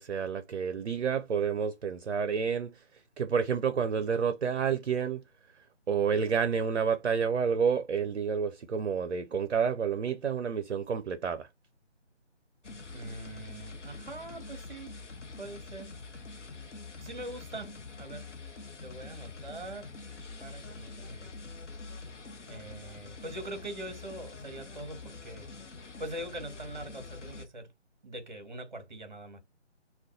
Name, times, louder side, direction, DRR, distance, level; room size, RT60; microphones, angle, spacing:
voice 1, 0.0-5.2 5.9-11.5, right 6 dB, 65° right, 0.5 m, -29 dB
sound 1, 12.6-27.5, left 3 dB, 80° left, 0.7 m, -45 dB
voice 2, 12.9-14.9 15.4-15.9 17.0-18.3 18.8-19.9 20.4-21.4 22.5-25.5 26.0-27.7 28.0-29.4, right 1 dB, 40° right, 0.9 m, -43 dB
2.6 x 2.2 x 3.6 m
figure-of-eight pair, 155°, 35 cm